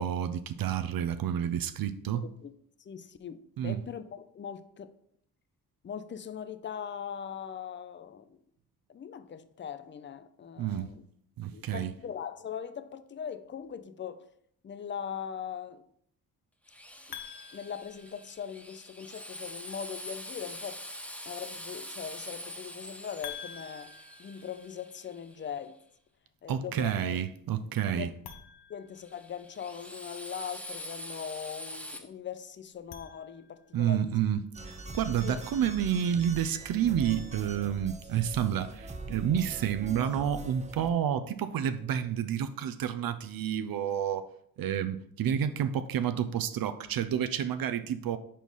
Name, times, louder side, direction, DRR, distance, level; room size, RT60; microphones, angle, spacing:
voice 1, 0.0-2.3 3.6-3.9 10.6-10.9 11.4-11.9 26.5-28.2 33.7-44.3 44.6-48.2, right 9 dB, 65° right, 0.5 m, -30 dB
voice 2, 2.8-4.9 5.8-8.4 8.9-11.0 11.5-14.3 14.6-15.8 17.1-17.2 17.5-20.8 21.3-25.8 26.4-27.2 27.9-28.1 28.7-34.2 35.2-35.4, left 8 dB, 30° left, 0.5 m, -40 dB
Drill, 16.7-25.6 29.0-32.0, equal, 5° left, 1.0 m, -44 dB
sound 1, 17.1-18.8 23.2-25.3 28.1-29.8 32.7-33.9, left 8 dB, 80° left, 0.8 m, -48 dB
sound 2, 34.5-40.9, right 2 dB, 20° right, 0.6 m, -42 dB
4.7 x 4.3 x 5.3 m
cardioid pair, 90°, 38 cm